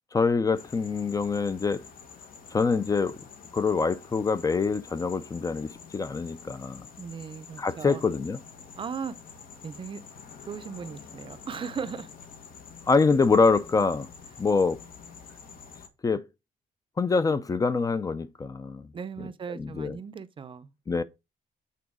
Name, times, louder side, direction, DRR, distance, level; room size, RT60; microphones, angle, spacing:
voice 1, 0.1-1.8 2.5-3.1 3.5-6.9 7.6-8.4 12.9-14.1 14.4-14.8 16.0-16.3 17.0-18.9 19.2-20.0 20.9-21.0, left 4 dB, 25° left, 0.5 m, -25 dB
sound 1, 0.5-15.9, left 6 dB, 75° left, 1.8 m, -48 dB
voice 2, 7.0-8.0 8.8-9.1 9.6-10.0 10.5-12.1 18.9-20.7, right 6 dB, 35° right, 0.6 m, -37 dB
8.5 x 3.9 x 4.9 m
cardioid pair, 145°, 15 cm